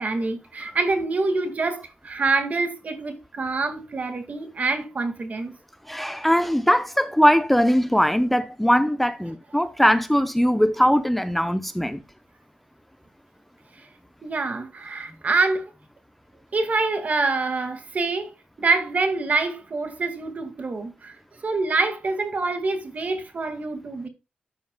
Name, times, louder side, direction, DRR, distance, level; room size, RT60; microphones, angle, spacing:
voice 1, 0.0-5.5 14.2-15.6 16.5-18.3 18.6-21.2 21.4-24.1, right 3 dB, 50° right, 2.0 m, -26 dB
voice 2, 5.9-12.0, equal, 5° left, 0.7 m, -20 dB
13.5 x 8.4 x 2.3 m
cardioid pair, 85°, 3 cm